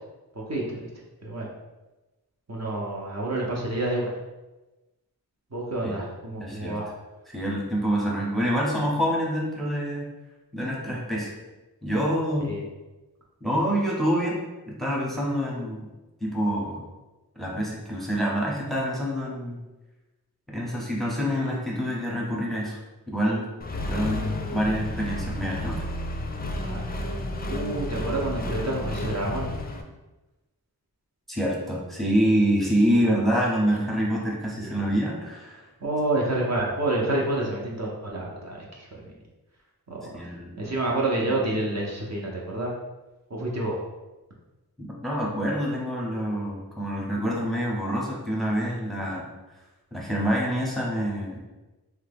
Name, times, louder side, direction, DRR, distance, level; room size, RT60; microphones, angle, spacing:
voice 1, 0.4-0.9 1.2-1.5 2.5-4.1 5.5-6.9 12.4-12.6 26.6-26.8 27.5-29.5 34.5-34.7 35.8-39.0 39.9-40.2 40.6-42.7 43.3-43.8, right 2 dB, 45° right, -3 dB, 0.6 m, -28 dB
voice 2, 6.4-6.8 7.3-10.1 10.5-11.3 11.8-12.5 13.4-15.9 16.2-16.8 17.4-19.6 20.5-22.8 23.1-23.5 23.9-25.9 31.3-35.7 40.1-40.6 44.8-49.3 49.9-51.4, equal, ahead, -3 dB, 0.7 m, -26 dB
Accelerating revving vroom, 23.6-29.8, left 1 dB, 25° left, 0.3 m, -31 dB
2.8 x 2.2 x 3.4 m, 1.1 s
wide cardioid pair, 45°, 37 cm